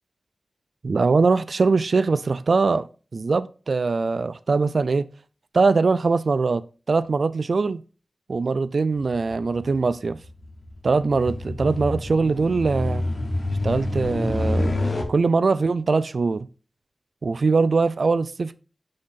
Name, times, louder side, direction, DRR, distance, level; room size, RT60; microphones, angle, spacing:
voice 1, 0.8-2.9 3.1-5.1 5.5-7.8 8.3-10.2 10.8-13.0 13.6-14.8 15.1-16.5 17.2-18.6, right 4 dB, 70° right, 0.4 m, -22 dB
sound 1, 9.0-15.0, left 2 dB, 50° left, 1.6 m, -28 dB
6.4 x 5.7 x 4.0 m
wide cardioid pair, 70°, 0 cm